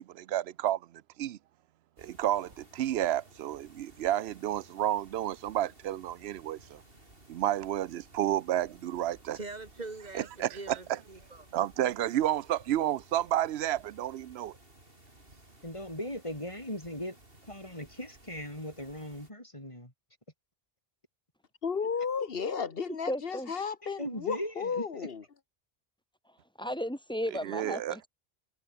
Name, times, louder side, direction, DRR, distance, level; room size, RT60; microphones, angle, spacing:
voice 1, 0.0-1.4 2.0-6.8 7.3-9.4 10.1-11.0 11.5-14.5 27.4-28.0, right 12 dB, 85° right, 0.8 m, -31 dB
sound 1, 2.0-19.3, right 1 dB, 65° right, 6.6 m, -57 dB
voice 2, 9.3-11.5, right 3 dB, 45° right, 2.9 m, -43 dB
voice 3, 15.6-17.2 17.5-19.9 23.8-25.1, left 1 dB, 30° left, 6.1 m, -39 dB
voice 4, 21.6-25.2, left 5 dB, 65° left, 1.5 m, -33 dB
voice 5, 22.9-23.5 26.6-28.1, equal, 5° left, 3.1 m, -34 dB
omnidirectional pair, 1.0 m